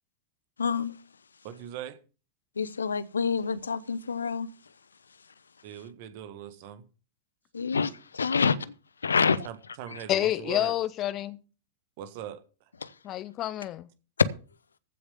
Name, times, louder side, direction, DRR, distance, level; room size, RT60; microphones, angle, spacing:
voice 1, 0.6-1.0 2.6-4.5 7.5-8.7 9.0-9.5 9.9-10.0 12.8-12.9, left 5 dB, 75° left, 0.7 m, -27 dB
voice 2, 1.4-2.0 5.6-6.8 9.4-10.7 12.0-12.4, right 10 dB, 50° right, 1.5 m, -40 dB
voice 3, 10.1-11.4 13.0-13.9, left 13 dB, 35° left, 1.0 m, -28 dB
15.0 x 6.4 x 5.5 m
figure-of-eight pair, 90°, 0 cm